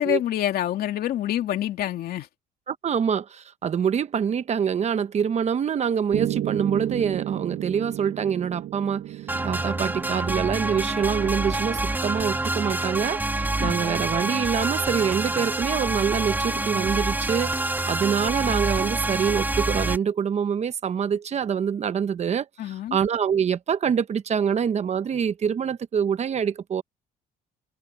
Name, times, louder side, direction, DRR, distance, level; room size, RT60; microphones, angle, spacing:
voice 1, 0.0-2.3 13.6-13.9 22.6-23.0, left 12 dB, 65° left, 2.4 m, -27 dB
voice 2, 2.7-9.2 9.4-22.5 22.9-26.8, right 7 dB, 40° right, 1.1 m, -25 dB
Piano, 6.1-14.2, right 13 dB, 65° right, 0.7 m, -34 dB
sound 1, 9.3-20.0, right 2 dB, 10° right, 2.1 m, -27 dB
cardioid pair, 110°, 17 cm